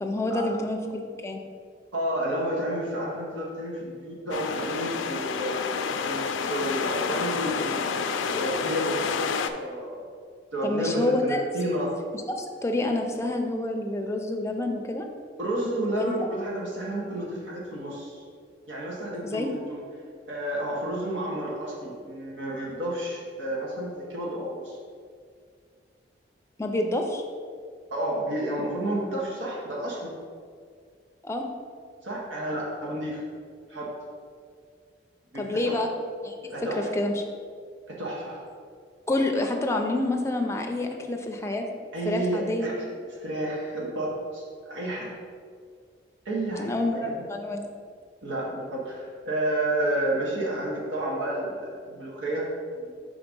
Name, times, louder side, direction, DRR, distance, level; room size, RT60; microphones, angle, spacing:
voice 1, 0.0-1.4 10.6-11.7 12.3-15.1 15.9-16.2 19.2-19.5 26.6-27.2 31.2-31.5 35.4-35.9 36.2-37.1 39.1-41.6 42.1-42.7 46.6-47.7, left 2 dB, 15° left, 3 dB, 0.4 m, -28 dB
voice 2, 1.9-5.6 5.9-10.0 10.5-11.9 15.4-18.2 18.7-19.8 20.3-24.8 27.9-30.1 32.0-33.2 33.7-33.9 35.3-35.8 36.4-36.9 37.9-38.4 41.9-45.1 46.2-47.2 48.2-52.4 52.7-52.9, right 1 dB, 85° right, -4 dB, 1.2 m, -31 dB
sound 1, 4.3-9.5, left 6 dB, 90° left, 0.4 m, -29 dB
4.9 x 3.8 x 5.2 m, 2.1 s
head